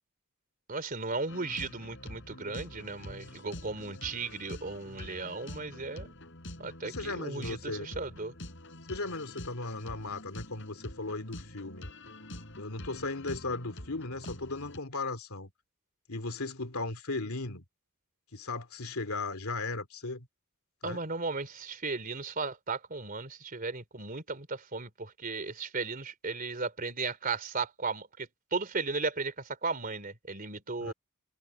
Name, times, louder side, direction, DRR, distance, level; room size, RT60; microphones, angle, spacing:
voice 1, 0.7-6.1 6.6-8.3 20.8-30.9, right 4 dB, 40° right, 3.4 m, -36 dB
sound 1, 1.3-14.8, left 1 dB, 55° left, 7.1 m, -46 dB
voice 2, 6.8-7.9 8.9-11.9 12.5-15.5 16.1-17.6 18.3-20.3 20.8-21.0 30.8-30.9, left 3 dB, 80° left, 2.9 m, -36 dB
head